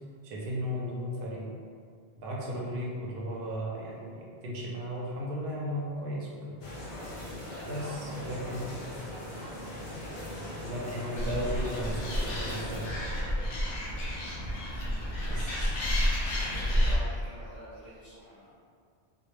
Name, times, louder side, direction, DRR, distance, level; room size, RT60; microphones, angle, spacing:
voice 1, 0.2-1.5 2.2-6.6 7.7-8.7 10.6-13.2 15.2-15.7, equal, 65° right, -4 dB, 0.7 m, -35 dB
sound 1, 6.6-12.9, left 1 dB, 90° left, 0.9 m, -40 dB
voice 2, 7.5-8.2 16.5-18.6, equal, 30° left, -12 dB, 0.6 m, -47 dB
Animal, 11.2-17.0, equal, 65° left, 0.7 m, -30 dB
2.2 x 2.0 x 3.0 m, 2.2 s
omnidirectional pair, 1.1 m